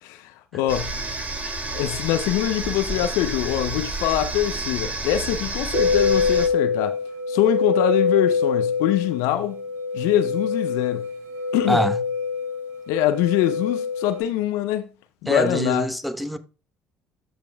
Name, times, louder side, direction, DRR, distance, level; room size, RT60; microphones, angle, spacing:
voice 1, 0.0-1.0 1.7-7.0 7.3-9.6 9.9-11.1 11.5-11.9 12.9-14.9 15.2-15.9, left 12 dB, 70° left, 0.6 m, -24 dB
sound 1, 0.7-6.5, right 3 dB, 30° right, 2.5 m, -30 dB
sound 2, 5.7-14.2, left 4 dB, 65° right, 3.2 m, -24 dB
voice 2, 15.3-16.4, equal, ahead, 1.0 m, -23 dB
13.5 x 5.2 x 2.3 m
hypercardioid pair, 55°, 5 cm